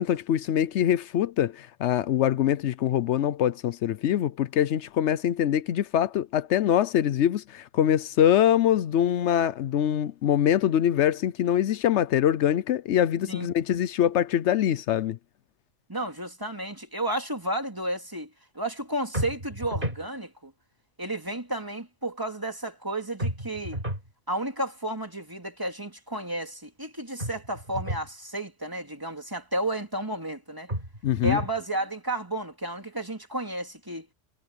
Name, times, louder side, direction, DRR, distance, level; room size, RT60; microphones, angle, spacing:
voice 1, 0.0-15.2 31.0-31.4, left 10 dB, 80° left, 0.9 m, -24 dB
voice 2, 15.9-18.3 18.5-20.5 21.0-23.8 24.3-30.7 31.2-34.1, right 1 dB, 20° right, 2.8 m, -32 dB
sound 1, 19.1-20.1 23.2-24.1 27.2-28.1 30.7-31.6, right 1 dB, 50° right, 5.1 m, -32 dB
omnidirectional pair, 1.2 m